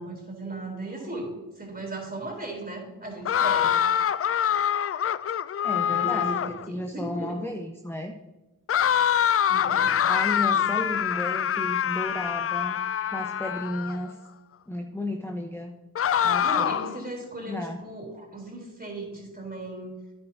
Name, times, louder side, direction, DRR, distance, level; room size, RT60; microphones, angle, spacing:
voice 1, 0.0-3.8 5.9-7.5 9.5-10.0 10.5-10.7 16.4-19.9, right 2 dB, 25° right, 1 dB, 3.4 m, -37 dB
sound 1, 3.3-6.7 8.7-14.0 16.0-17.0, left 9 dB, 40° left, 0.4 m, -25 dB
voice 2, 5.6-8.2 10.0-12.8 13.1-14.2 14.7-15.7 16.2-16.7 17.4-17.8, left 1 dB, 5° left, 2 dB, 0.9 m, -33 dB
9.7 x 9.2 x 2.8 m, 1.1 s
supercardioid pair, 45°, 38 cm